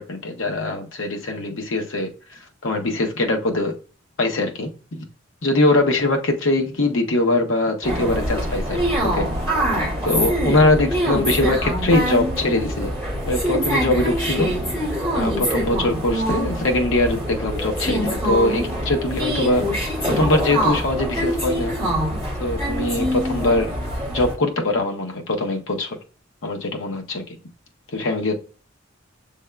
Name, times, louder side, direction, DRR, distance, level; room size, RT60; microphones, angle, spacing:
voice 1, 0.0-3.8 4.2-5.0 5.4-8.8 9.1-9.3 10.0-12.9 13.2-14.5 15.1-19.6 20.0-21.8 22.4-23.7 24.0-26.0 26.4-27.4 27.9-28.3, left 2 dB, 75° left, 0.8 m, -22 dB
sound 1, 7.8-24.3, equal, 15° left, 2.4 m, -24 dB
6.4 x 3.5 x 2.2 m
head